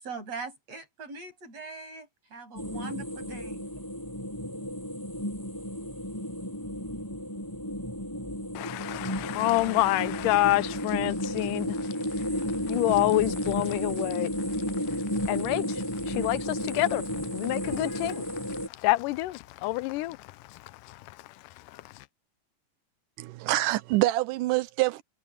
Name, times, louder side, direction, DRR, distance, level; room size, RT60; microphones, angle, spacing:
voice 1, 0.0-3.6, right 3 dB, 50° right, 9.3 m, -41 dB
Winter Wind Mash-Up slow, 2.6-18.7, equal, 5° left, 8.0 m, -33 dB
voice 2, 8.5-22.1, left 18 dB, 80° left, 2.1 m, -29 dB
voice 3, 23.2-25.0, right 17 dB, 80° right, 2.2 m, -26 dB
omnidirectional pair, 3.8 m